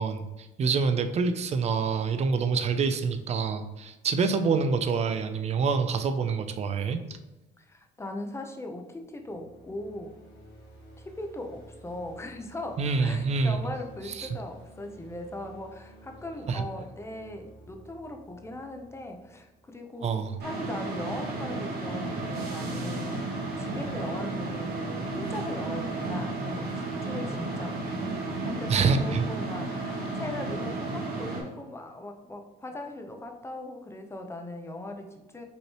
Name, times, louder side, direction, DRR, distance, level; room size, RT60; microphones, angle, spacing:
voice 1, 0.0-7.0 12.8-13.6 14.1-14.3 16.5-16.6 20.0-20.3 28.7-29.3, right 5 dB, 40° right, 9 dB, 0.5 m, -26 dB
voice 2, 7.6-10.1 11.0-23.1 23.6-35.4, left 1 dB, 15° left, 4 dB, 0.6 m, -39 dB
sound 1, 9.0-20.0, right 1 dB, 80° left, 1.5 m, -52 dB
sound 2, 20.4-31.4, right 2 dB, 65° right, 1.2 m, -33 dB
5.4 x 3.1 x 3.0 m, 1.1 s
cardioid pair, 110°, 17 cm